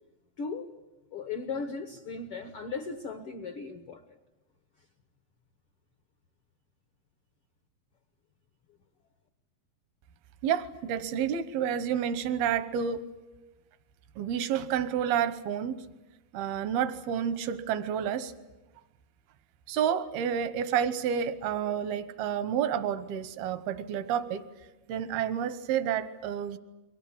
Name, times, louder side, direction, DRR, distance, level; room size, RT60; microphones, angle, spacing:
voice 1, 0.4-0.7 1.1-4.0, left 4 dB, 80° left, 8 dB, 1.2 m, -37 dB
voice 2, 10.4-13.0 14.2-15.8 16.3-18.3 19.7-24.4 24.9-26.6, right 8 dB, 80° right, 12 dB, 3.0 m, -29 dB
29.5 x 23.0 x 7.3 m, 1.0 s
omnidirectional pair, 4.4 m